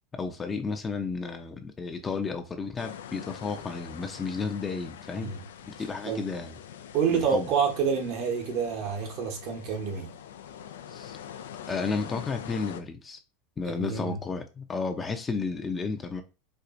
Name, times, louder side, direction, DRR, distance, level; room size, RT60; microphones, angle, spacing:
voice 1, 0.1-5.3 5.7-6.5 7.1-7.5 10.9-11.2 11.7-13.2 13.6-16.2, left 4 dB, 20° left, 0.6 m, -32 dB
sound 1, 2.8-12.8, left 9 dB, 90° left, 0.4 m, -44 dB
voice 2, 6.9-10.1 13.6-14.2, right 6 dB, 55° right, 1.0 m, -28 dB
4.4 x 2.4 x 2.6 m
supercardioid pair, 115°, 0 cm